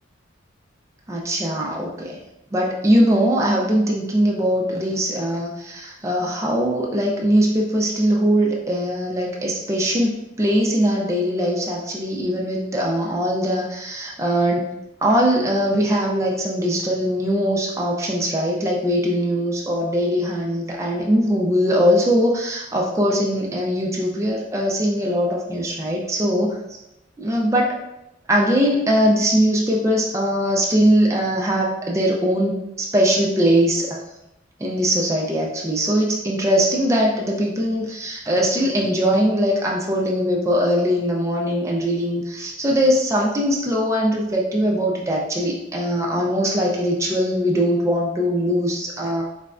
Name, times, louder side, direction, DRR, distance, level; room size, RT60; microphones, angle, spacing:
voice 1, 1.1-2.2 2.5-14.7 15.0-26.5 27.2-27.7 28.3-33.9 34.6-49.2, equal, 15° right, -2 dB, 0.3 m, -21 dB
4.0 x 2.1 x 2.4 m, 0.88 s
head